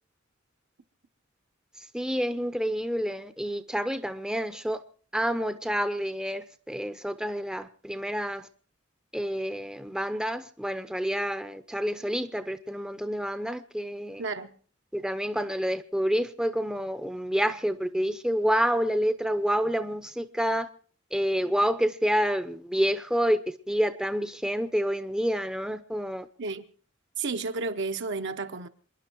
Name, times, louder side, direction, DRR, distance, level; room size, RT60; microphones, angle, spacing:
voice 1, 1.8-4.8 5.1-8.5 9.1-14.2 14.9-20.7 21.1-26.3, equal, 5° right, 0.7 m, -28 dB
voice 2, 14.2-14.5 26.4-26.6 27.2-28.7, right 4 dB, 60° right, 1.0 m, -32 dB
27.5 x 11.0 x 4.6 m
head